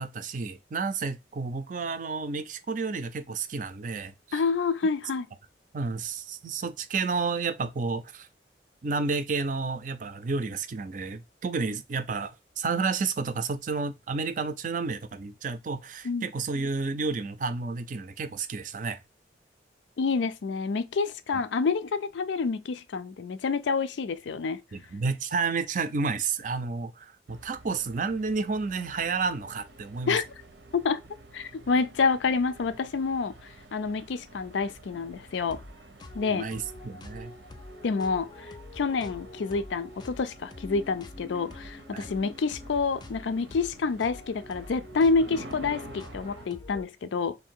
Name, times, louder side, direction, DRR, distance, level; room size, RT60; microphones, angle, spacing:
voice 1, 0.0-4.4 5.7-8.3 8.8-19.0 21.3-21.4 24.7-30.2 36.3-37.3 41.9-42.1, right 4 dB, 45° right, 0.4 m, -31 dB
voice 2, 4.3-5.3 16.0-16.3 20.0-24.6 30.1-30.3 30.7-31.0 31.3-33.3 33.7-35.6 36.1-36.5 37.8-38.3 38.7-47.4, left 4 dB, 90° left, 0.4 m, -28 dB
sound 1, 27.3-46.5, right 2 dB, 85° right, 0.8 m, -49 dB
sound 2, 35.5-46.9, left 2 dB, 25° left, 0.3 m, -46 dB
3.3 x 2.6 x 4.5 m
head